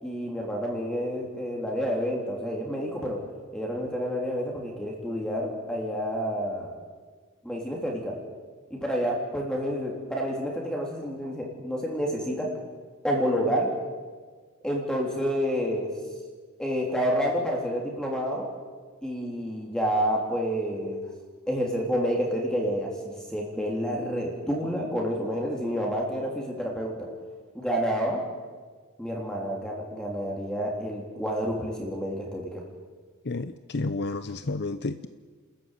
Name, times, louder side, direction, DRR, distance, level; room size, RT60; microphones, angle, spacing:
voice 1, 0.0-3.2 3.5-6.8 7.4-8.1 8.7-12.5 13.0-13.7 14.6-15.9 16.6-18.5 19.0-21.0 21.5-22.9 23.3-26.9 27.5-28.2 29.0-32.6, equal, 5° left, -1 dB, 3.5 m, -29 dB
voice 2, 33.3-35.1, left 3 dB, 50° left, 12 dB, 0.7 m, -31 dB
30.0 x 14.0 x 9.4 m, 1.5 s
head